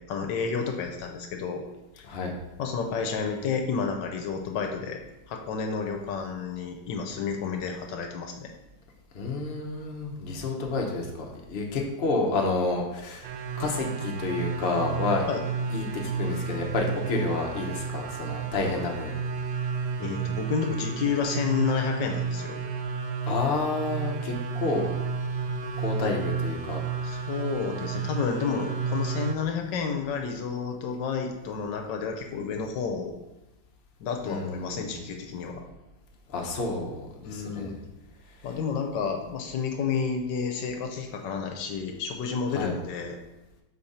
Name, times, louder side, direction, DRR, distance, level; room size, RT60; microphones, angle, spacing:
voice 1, 0.0-1.6 1.9-2.1 2.6-5.0 5.3-8.5 15.3-15.4 20.0-22.6 27.0-33.1 34.0-35.6 37.2-37.8 38.4-43.2, left 5 dB, 75° left, 3 dB, 1.3 m, -30 dB
voice 2, 9.1-13.3 13.6-15.3 15.7-19.1 23.3-24.9 25.8-26.8 34.2-35.0 36.3-37.7 42.5-42.7, left 3 dB, 45° left, 0 dB, 0.7 m, -29 dB
sound 1, 13.2-29.3, right 5 dB, 85° right, 0.7 m, -32 dB
5.1 x 4.4 x 4.2 m, 0.97 s
omnidirectional pair, 2.1 m